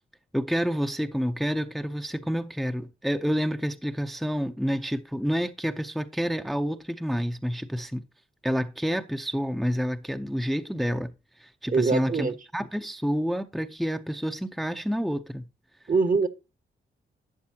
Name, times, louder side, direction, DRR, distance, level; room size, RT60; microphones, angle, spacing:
voice 1, 0.3-8.0 8.4-15.5, equal, ahead, 0.6 m, -29 dB
voice 2, 11.7-12.3 15.9-16.3, right 4 dB, 40° right, 1.1 m, -23 dB
12.0 x 7.5 x 2.8 m
cardioid pair, 55°, 20 cm